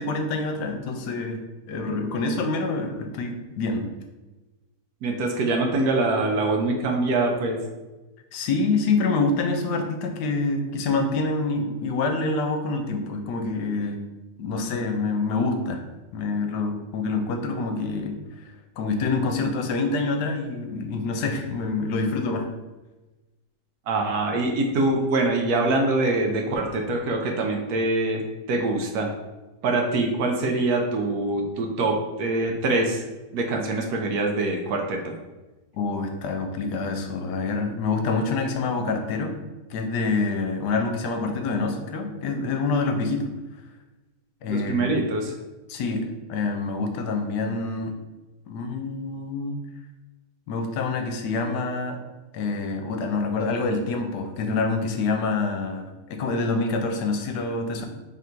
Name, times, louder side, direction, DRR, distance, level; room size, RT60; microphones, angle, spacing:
voice 1, 0.0-1.4 1.7-3.8 8.3-14.0 14.4-15.8 16.1-18.2 18.8-22.5 35.7-39.4 39.7-43.3 44.4-44.9 45.7-47.9 48.5-49.6 50.5-52.0 52.3-55.8 56.1-57.9, left 3 dB, 80° left, 5 dB, 1.2 m, -26 dB
voice 2, 5.0-7.6 23.9-28.2 28.5-29.1 29.6-33.0 33.3-35.1 44.5-45.3, right 2 dB, 70° right, 2 dB, 1.1 m, -24 dB
3.4 x 2.5 x 4.3 m, 1.1 s
omnidirectional pair, 1.8 m